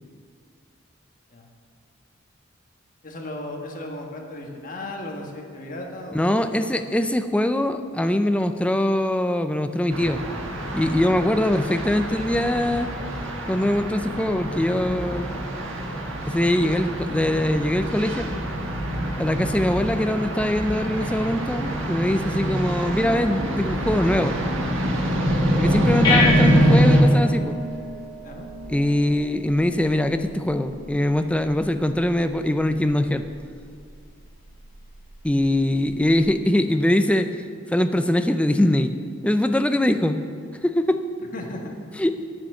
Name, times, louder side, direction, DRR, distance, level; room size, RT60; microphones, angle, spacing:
voice 1, 3.0-6.6 28.2-28.5 41.2-41.7, left 1 dB, 45° left, 1 dB, 1.5 m, -36 dB
voice 2, 6.1-10.2 10.7-12.9 13.5-15.3 16.3-18.3 19.2-24.4 25.5-27.6 28.7-33.2 35.2-37.3 37.7-38.9 39.2-40.2 40.6-41.0 42.0-42.1, left 1 dB, 5° left, 9 dB, 0.4 m, -22 dB
sound 1, 9.9-27.0, equal, 75° right, 1.6 m, -25 dB
sound 2, 25.6-36.2, left 2 dB, 20° left, 3.2 m, -32 dB
8.8 x 7.2 x 8.9 m, 2.2 s
head